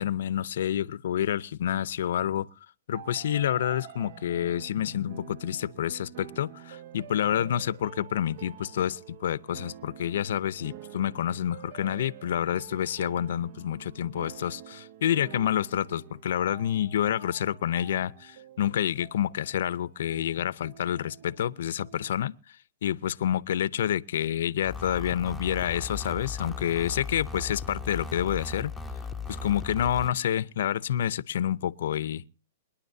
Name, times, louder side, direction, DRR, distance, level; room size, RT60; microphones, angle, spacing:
voice 1, 0.0-2.5 2.9-22.3 22.8-28.7 29.3-32.2, left 10 dB, 70° left, 0.6 m, -28 dB
sound 1, 2.9-22.1, right 10 dB, 50° right, 0.7 m, -48 dB
sound 2, 24.6-30.1, left 4 dB, ahead, 0.8 m, -37 dB
27.5 x 10.0 x 2.7 m
hypercardioid pair, 145°, 0 cm